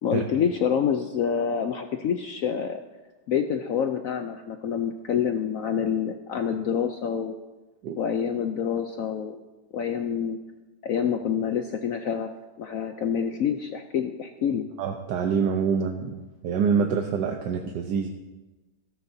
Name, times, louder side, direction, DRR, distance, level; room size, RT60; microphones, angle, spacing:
voice 1, 0.0-2.8 3.3-7.3 8.0-9.4 9.7-10.4 10.8-12.3 12.6-14.7, left 7 dB, 80° left, 7 dB, 0.7 m, -27 dB
voice 2, 14.8-16.1 16.4-18.1, right 6 dB, 70° right, 3 dB, 1.4 m, -25 dB
15.5 x 14.0 x 2.7 m, 1.1 s
omnidirectional pair, 2.1 m